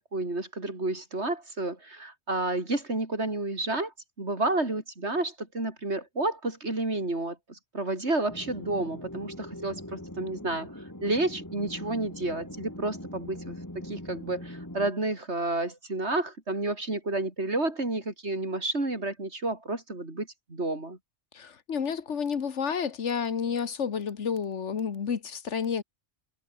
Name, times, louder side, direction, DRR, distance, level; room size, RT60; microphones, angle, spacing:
voice 1, 0.1-21.0, right 2 dB, 70° right, 4.8 m, -31 dB
sound 1, 8.3-14.9, left 1 dB, 15° left, 3.7 m, -41 dB
voice 2, 21.3-25.8, left 6 dB, 85° left, 1.6 m, -30 dB
omnidirectional pair, 1.2 m